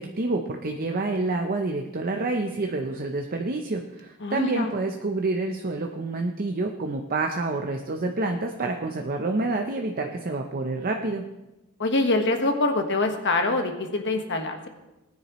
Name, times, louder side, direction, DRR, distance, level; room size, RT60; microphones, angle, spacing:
voice 1, 0.0-11.2, right 2 dB, 40° right, 3 dB, 0.7 m, -28 dB
voice 2, 4.2-4.7 11.8-14.7, left 2 dB, 55° left, 5 dB, 1.4 m, -25 dB
19.0 x 9.8 x 3.1 m, 1.0 s
head